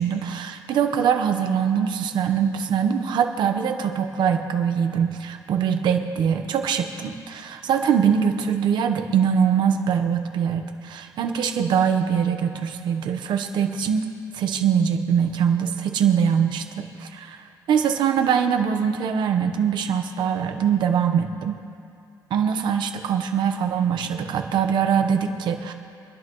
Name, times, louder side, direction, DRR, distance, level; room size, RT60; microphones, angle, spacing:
voice 1, 0.0-14.1 14.3-17.4 17.7-21.5 22.3-25.7, right 7 dB, 70° right, 5 dB, 1.1 m, -23 dB
27.5 x 11.0 x 3.1 m, 2.5 s
cardioid pair, 165°, 8 cm